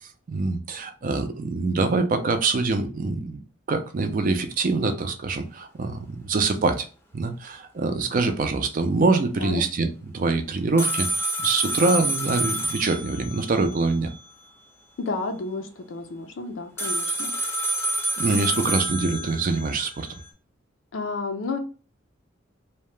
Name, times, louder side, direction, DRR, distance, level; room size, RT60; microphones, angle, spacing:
voice 1, 0.3-3.4 3.7-6.9 7.1-14.1 18.2-20.1, right 3 dB, 45° right, 0.4 m, -24 dB
sound 1, 10.8-14.2 16.8-20.2, right 1 dB, 10° left, 0.5 m, -28 dB
voice 2, 15.0-17.3 20.9-21.6, left 3 dB, 70° left, 0.4 m, -31 dB
2.8 x 2.2 x 3.1 m
head